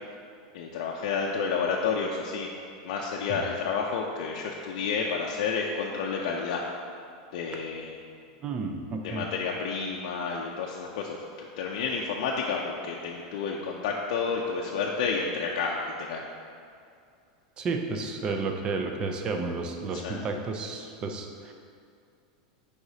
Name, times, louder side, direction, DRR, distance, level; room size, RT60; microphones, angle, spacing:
voice 1, 0.5-2.5 2.8-6.6 7.3-8.0 9.0-16.2 19.9-20.2, left 5 dB, 60° left, -2 dB, 0.5 m, -30 dB
voice 2, 8.4-9.3 17.6-21.5, right 4 dB, 20° right, 4 dB, 0.5 m, -32 dB
8.0 x 4.9 x 2.8 m, 2.4 s
supercardioid pair, 165°, 4 cm